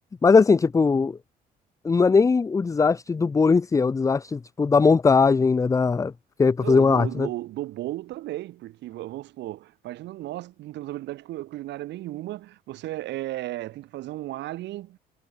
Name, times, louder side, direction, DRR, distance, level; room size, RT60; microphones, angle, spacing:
voice 1, 0.2-1.2 1.8-6.1 6.4-7.3, left 4 dB, 15° left, 0.4 m, -20 dB
voice 2, 6.6-15.0, right 15 dB, 70° right, 1.8 m, -34 dB
supercardioid pair, 70°, 19 cm